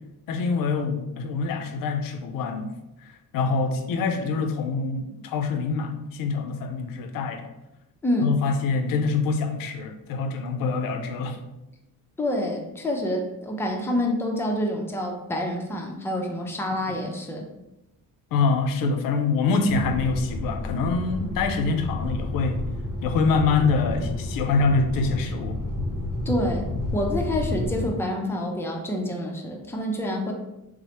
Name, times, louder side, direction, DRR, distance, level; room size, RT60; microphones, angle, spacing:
voice 1, 0.3-2.7 3.3-7.4 8.2-11.4 16.9-17.0 18.3-22.6 23.0-25.6, left 4 dB, 70° left, 6 dB, 0.5 m, -25 dB
voice 2, 12.2-17.4 26.3-26.7 26.9-30.3, left 1 dB, 5° left, 1 dB, 0.4 m, -27 dB
sound 1, 19.7-27.9, left 2 dB, 75° right, 0.9 m, -30 dB
3.1 x 2.0 x 2.8 m, 0.93 s
cardioid pair, 100°, 35 cm